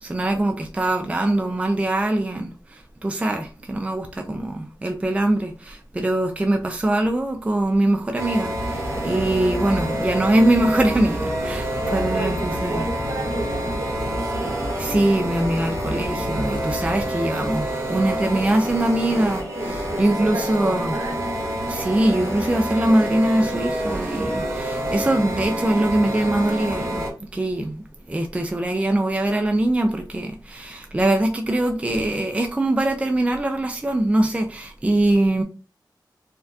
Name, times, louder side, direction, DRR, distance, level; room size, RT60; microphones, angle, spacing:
voice 1, 0.0-12.8 14.8-20.9 21.7-27.8 28.1-35.4, right 1 dB, 15° right, 0.3 m, -22 dB
sound 1, 8.2-27.1, right 1 dB, 35° right, 1.1 m, -27 dB
sound 2, 8.5-17.1, equal, 70° left, 1.2 m, -34 dB
voice 2, 11.8-14.6 19.1-21.4, right 2 dB, 65° right, 1.4 m, -33 dB
4.3 x 2.3 x 2.7 m
wide cardioid pair, 120°, 8 cm